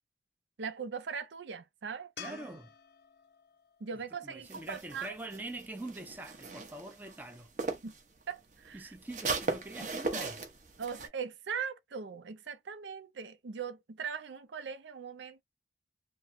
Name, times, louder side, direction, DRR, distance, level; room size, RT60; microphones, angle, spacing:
voice 1, 0.6-2.5 3.8-5.1 7.8-7.9 8.3-8.9 10.1-10.2 10.8-15.4, right 6 dB, 80° right, 0.5 m, -40 dB
sound 1, 2.2-5.4 8.7-8.8, left 7 dB, 65° left, 0.6 m, -52 dB
voice 2, 2.2-2.7 4.2-7.5 8.7-10.4, right 1 dB, 10° right, 0.5 m, -44 dB
sound 2, 4.4-8.0 8.3-11.1, right 3 dB, 45° right, 0.7 m, -38 dB
3.0 x 2.1 x 2.5 m
head